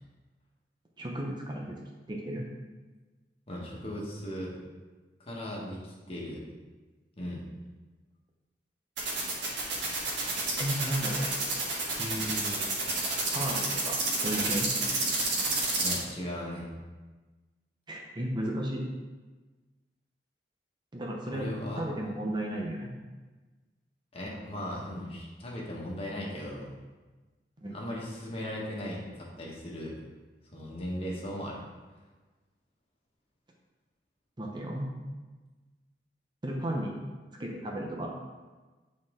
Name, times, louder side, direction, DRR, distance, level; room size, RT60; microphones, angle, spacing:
voice 1, 1.0-1.8 2.1-2.5 10.6-11.2 12.0-12.7 13.3-14.7 17.9-18.8 20.9-21.5 21.7-22.9 27.6-27.8 34.4-34.9 36.4-37.0 37.4-38.1, right 1 dB, 25° right, -1 dB, 0.7 m, -34 dB
voice 2, 3.5-4.5 5.2-6.4 7.2-7.5 15.8-16.7 21.3-21.8 24.1-26.6 27.7-29.9 30.5-31.6, left 1 dB, 35° left, -4 dB, 1.4 m, -37 dB
sound 1, 9.0-15.9, right 3 dB, 80° right, 1.6 m, -29 dB
8.4 x 4.3 x 3.7 m, 1.3 s
head